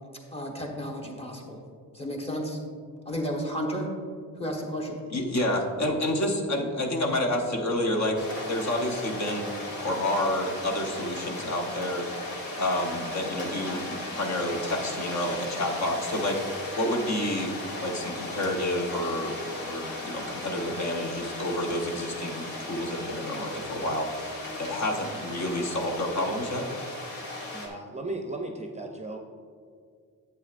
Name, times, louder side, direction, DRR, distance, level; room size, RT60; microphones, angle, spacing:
voice 1, 0.3-1.6 1.9-2.6 3.0-3.9 4.4-5.0, equal, 15° left, -1 dB, 1.2 m, -32 dB
voice 2, 5.1-8.2 8.4-9.5 9.8-12.1 12.6-16.4 16.8-24.3 24.6-26.7, left 1 dB, 50° left, 2 dB, 0.9 m, -29 dB
sound 1, 8.2-27.7, left 1 dB, 80° left, 1.7 m, -37 dB
voice 3, 27.5-29.2, right 2 dB, 20° right, 3 dB, 0.5 m, -36 dB
10.5 x 8.3 x 2.5 m, 2.1 s
wide cardioid pair, 145°, 35 cm